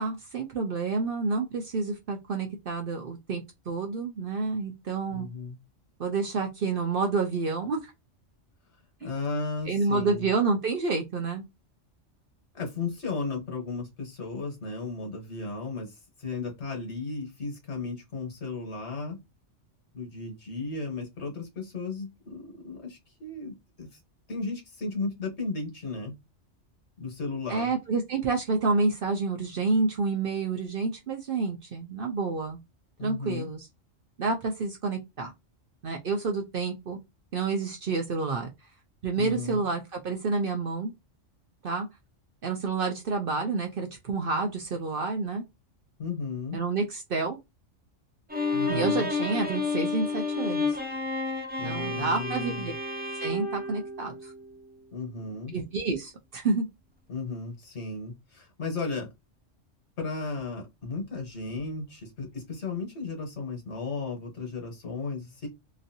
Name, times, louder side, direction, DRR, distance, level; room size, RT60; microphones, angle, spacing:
voice 1, 0.0-5.3 6.0-7.8 9.0-9.1 9.7-11.4 27.5-32.6 33.0-33.6 34.2-35.3 35.8-37.0 37.3-38.5 39.0-40.9 41.6-41.9 42.4-45.4 46.5-47.4 48.7-50.7 51.6-52.7 53.2-54.3 55.5-56.7, right 4 dB, 55° right, 0.7 m, -29 dB
voice 2, 5.1-5.6 9.0-10.3 12.5-15.9 16.2-19.2 19.9-23.9 24.3-26.2 27.0-27.7 33.0-33.5 39.2-39.6 46.0-46.6 48.5-49.1 51.6-52.8 54.9-55.5 57.1-59.1 60.0-65.5, left 3 dB, 60° left, 1.5 m, -35 dB
Bowed string instrument, 48.3-54.6, left 3 dB, 15° right, 0.3 m, -31 dB
3.0 x 2.6 x 2.7 m
omnidirectional pair, 1.3 m